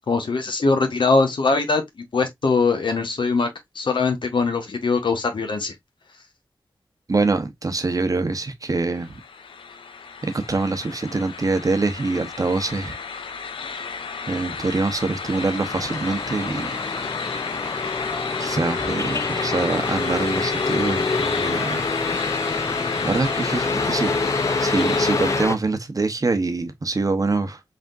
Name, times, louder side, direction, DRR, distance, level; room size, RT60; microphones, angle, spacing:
voice 1, 0.1-1.8 2.1-3.5 3.7-5.7, left 4 dB, 70° left, 1.2 m, -21 dB
voice 2, 7.1-9.2 10.2-13.0 14.3-16.7 18.4-21.8 23.0-24.2 24.6-27.6, right 3 dB, 45° right, 0.9 m, -24 dB
sound 1, 8.9-25.4, left 5 dB, 90° left, 0.6 m, -31 dB
sound 2, 15.2-25.6, left 3 dB, 35° left, 0.4 m, -27 dB
4.2 x 3.5 x 2.5 m
cardioid pair, 55°, 9 cm